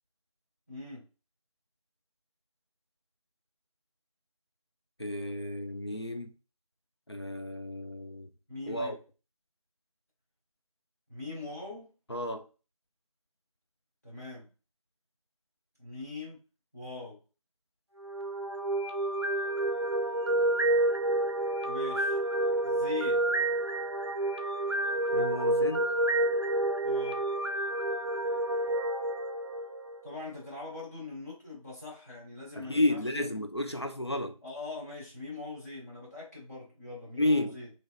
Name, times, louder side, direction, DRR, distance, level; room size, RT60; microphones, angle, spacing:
voice 1, 0.7-1.0 8.5-9.0 11.1-11.9 14.0-14.5 15.8-16.4 16.7-17.2 21.6-22.2 22.6-23.3 26.8-27.2 30.0-33.3 34.4-37.7, left 3 dB, 25° left, 1.3 m, -42 dB
voice 2, 5.0-6.3 7.1-8.3 8.7-9.0 12.1-12.5 25.1-25.9 32.6-34.4 37.2-37.6, left 1 dB, 50° left, 0.4 m, -31 dB
sound 1, 18.0-30.1, right 1 dB, 50° right, 0.5 m, -29 dB
2.9 x 2.9 x 2.3 m
figure-of-eight pair, 175°, 18 cm